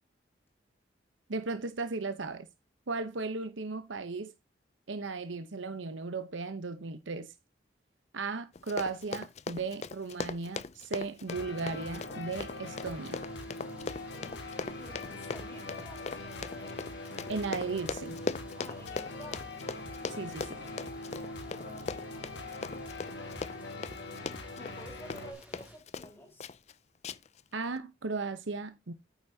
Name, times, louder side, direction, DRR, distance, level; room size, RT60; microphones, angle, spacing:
voice 1, 1.3-2.5 2.9-4.3 4.9-7.3 8.1-13.2 17.3-18.2 20.1-20.6 27.5-28.9, right 4 dB, 85° right, 0.9 m, -36 dB
Run, 8.5-26.1 26.4-26.7 27.0-27.4 27.8-27.9, left 4 dB, 35° left, 0.4 m, -40 dB
sound 1, 11.3-25.3, left 2 dB, 65° left, 1.7 m, -42 dB
sound 2, 12.7-25.8, equal, 5° right, 2.6 m, -57 dB
voice 2, 14.1-14.5 14.8-16.9 18.6-19.5 21.4-22.2 24.5-26.5, left 1 dB, 10° left, 4.2 m, -51 dB
9.2 x 8.2 x 2.8 m
head